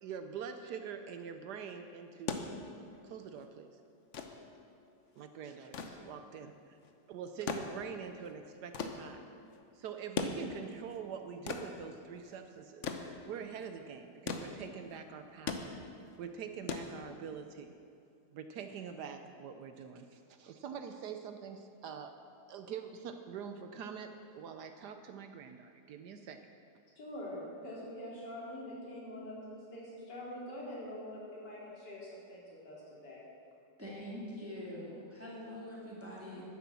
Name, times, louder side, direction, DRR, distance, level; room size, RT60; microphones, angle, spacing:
voice 1, 0.0-2.3 3.0-3.7 5.1-6.8 7.1-9.2 9.7-12.9 13.3-15.7 16.2-17.8 18.3-22.1 22.5-26.4, right 7 dB, 70° right, 7 dB, 1.2 m, -44 dB
sound 1, 2.0-17.5 18.8-18.9, left 5 dB, 50° left, 1.0 m, -42 dB
voice 2, 27.0-33.2, left 1 dB, 70° left, -6 dB, 3.8 m, -45 dB
voice 3, 33.8-36.4, left 1 dB, 5° right, -6 dB, 2.4 m, -44 dB
11.0 x 9.9 x 7.0 m, 2.4 s
omnidirectional pair, 1.9 m